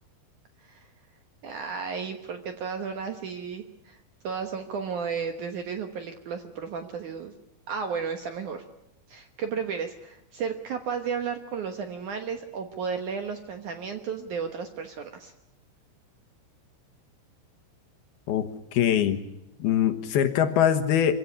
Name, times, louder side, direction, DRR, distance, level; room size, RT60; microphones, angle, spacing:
voice 1, 1.4-4.0 4.2-7.3 7.7-8.6 9.1-15.3, right 6 dB, 65° right, 6 dB, 2.1 m, -33 dB
voice 2, 18.3-19.2 19.6-21.1, left 9 dB, 70° left, 8 dB, 3.0 m, -23 dB
25.0 x 16.5 x 9.7 m, 0.85 s
omnidirectional pair, 4.9 m